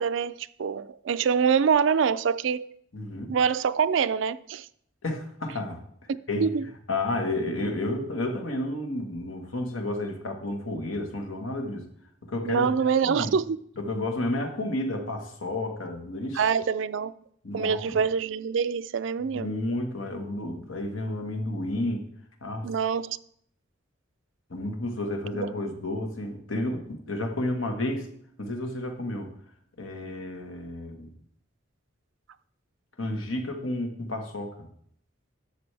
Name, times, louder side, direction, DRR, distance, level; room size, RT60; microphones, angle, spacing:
voice 1, 0.0-2.7 3.3-4.7 6.4-6.7 12.5-13.6 16.3-17.1 17.5-19.5 22.6-23.2 25.3-25.5, right 6 dB, 70° right, 0.4 m, -25 dB
voice 2, 2.9-3.3 5.0-6.5 6.9-11.9 12.2-13.3 13.8-16.5 17.4-18.0 19.3-22.0 22.4-22.7 24.5-28.1 28.4-29.3 29.8-31.1 33.0-34.7, left 1 dB, 85° left, 1.5 m, -31 dB
12.0 x 6.9 x 3.4 m
head